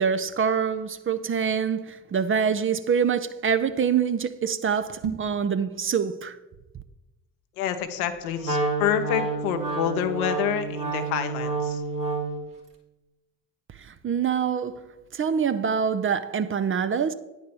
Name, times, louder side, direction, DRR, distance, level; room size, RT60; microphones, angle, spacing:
voice 1, 0.0-6.4 14.0-14.9 15.1-17.1, right 7 dB, 30° right, 0.6 m, -25 dB
sound 1, 4.9-5.4, right 7 dB, 75° right, 1.6 m, -32 dB
voice 2, 7.6-11.8, left 9 dB, 75° left, 0.9 m, -28 dB
Wind instrument woodwind instrument, 8.4-12.5, right 3 dB, 50° right, 2.2 m, -29 dB
9.4 x 4.4 x 6.9 m
hypercardioid pair, 45°, 43 cm